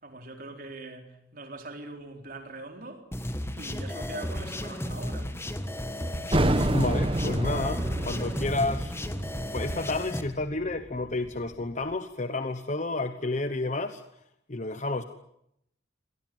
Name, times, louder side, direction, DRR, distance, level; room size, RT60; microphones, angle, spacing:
voice 1, 0.0-3.1 3.6-5.4, right 2 dB, 50° right, 4.1 m, -42 dB
sound 1, 3.1-10.2, equal, 15° left, 1.5 m, -34 dB
sound 2, 6.3-11.6, right 1 dB, 30° right, 1.2 m, -29 dB
voice 2, 6.7-9.0 9.5-14.0 14.5-15.0, left 2 dB, 40° left, 1.1 m, -30 dB
25.5 x 18.5 x 9.2 m
head